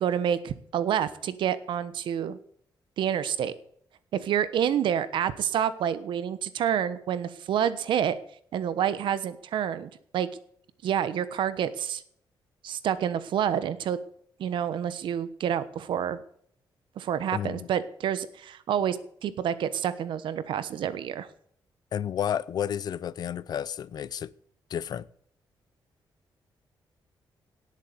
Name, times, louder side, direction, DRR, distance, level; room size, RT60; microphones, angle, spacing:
voice 1, 0.0-2.4 3.0-3.5 4.1-8.2 8.5-10.3 10.8-12.0 12.6-14.0 14.4-16.2 17.0-21.3, right 9 dB, 80° right, 1.2 m, -28 dB
voice 2, 17.3-17.7 21.9-24.3 24.7-25.1, left 9 dB, 55° left, 0.6 m, -31 dB
18.0 x 8.1 x 6.8 m
wide cardioid pair, 170°, 8 cm